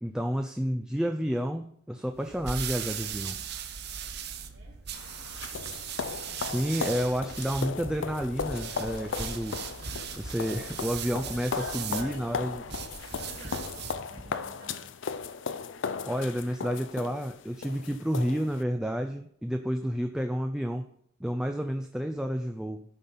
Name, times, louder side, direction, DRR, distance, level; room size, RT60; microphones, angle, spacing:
voice 1, 0.0-3.4 6.4-9.6 10.1-12.6 16.0-20.9 21.2-22.8, equal, 5° right, 5 dB, 0.4 m, -30 dB
sound 1, 2.1-14.0, right 8 dB, 55° right, 0.9 m, -39 dB
sound 2, 4.9-18.6, left 5 dB, 65° left, 0.5 m, -37 dB
Run, 7.5-14.6, equal, 30° right, 1.6 m, -46 dB
voice 2, 11.3-12.8 13.1-14.9, right 3 dB, 75° right, -7 dB, 2.6 m, -50 dB
11.5 x 5.4 x 5.6 m, 0.66 s
head